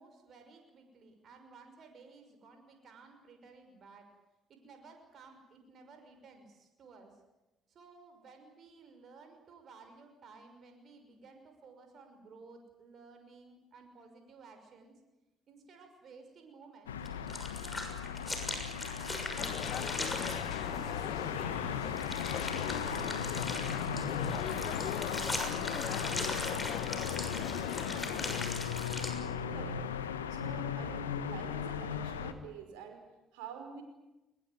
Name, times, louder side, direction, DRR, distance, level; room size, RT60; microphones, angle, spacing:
voice 1, 0.0-4.1 4.5-7.1 7.7-14.9 15.5-17.0 17.5-18.0 18.3-21.1 21.4-25.0 25.7-28.6, right 4 dB, 50° right, 5 dB, 5.9 m, -55 dB
sound 1, 16.9-32.3, left 7 dB, 85° left, 1.3 m, -37 dB
sound 2, 17.0-20.4 22.0-29.1, left 2 dB, 20° left, 6.5 m, -40 dB
sound 3, 19.4-28.5, left 10 dB, 55° left, 0.8 m, -40 dB
voice 2, 29.5-29.8 30.3-33.0 33.3-33.8, right 6 dB, 75° right, 5 dB, 5.2 m, -47 dB
22.5 x 21.5 x 9.6 m, 0.97 s
hypercardioid pair, 50°, 0 cm